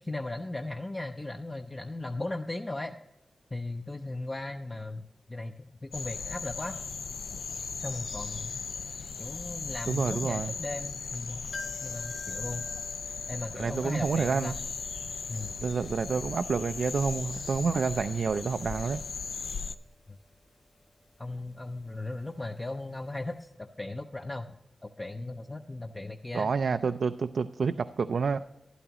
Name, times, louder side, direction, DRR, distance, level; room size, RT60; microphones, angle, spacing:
voice 1, 0.0-3.0 3.5-5.0 5.3-6.8 7.8-8.6 9.2-11.5 11.8-12.7 13.3-14.6 15.3-15.6 20.1-20.2 21.2-24.5 24.8-26.5, left 2 dB, 25° left, 4 dB, 0.5 m, -37 dB
sound 1, 5.9-19.8, left 5 dB, 85° left, 0.4 m, -38 dB
voice 2, 9.9-10.5 13.6-14.5 15.6-19.0 26.3-28.4, right 5 dB, 75° right, 9 dB, 0.3 m, -28 dB
sound 2, 11.5-23.1 23.4-23.5, left 2 dB, 50° left, 2.9 m, -51 dB
12.5 x 11.0 x 2.9 m, 0.90 s
wide cardioid pair, 115°, 0 cm